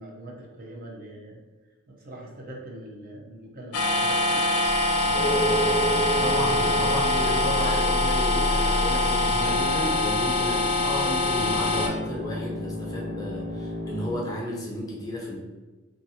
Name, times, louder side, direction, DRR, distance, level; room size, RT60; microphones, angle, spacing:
voice 1, 0.0-1.4 1.9-4.5 5.3-6.4 10.5-10.6, right 1 dB, 45° right, -1 dB, 0.5 m, -42 dB
sound 1, 3.7-11.9, left 2 dB, 85° left, 0.4 m, -24 dB
sound 2, 5.0-8.4 11.4-14.2, left 1 dB, 90° right, 1.2 m, -35 dB
sound 3, 5.1-10.5, right 2 dB, 40° left, 0.9 m, -31 dB
voice 2, 6.2-15.4, equal, 20° left, -3 dB, 0.6 m, -32 dB
2.6 x 2.5 x 2.7 m, 1.2 s
head